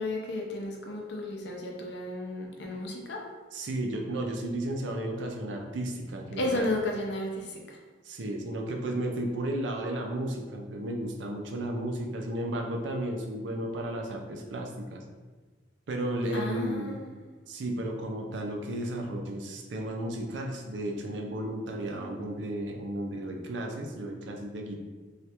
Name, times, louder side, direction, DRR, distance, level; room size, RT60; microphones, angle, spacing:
voice 1, 0.0-3.2 6.3-7.8 16.3-17.2, left 1 dB, 65° left, 0 dB, 0.5 m, -33 dB
voice 2, 3.5-6.7 8.0-15.0 15.9-17.0 17.5-24.8, right 1 dB, 75° right, 1 dB, 0.5 m, -33 dB
3.2 x 2.4 x 2.8 m, 1.4 s
head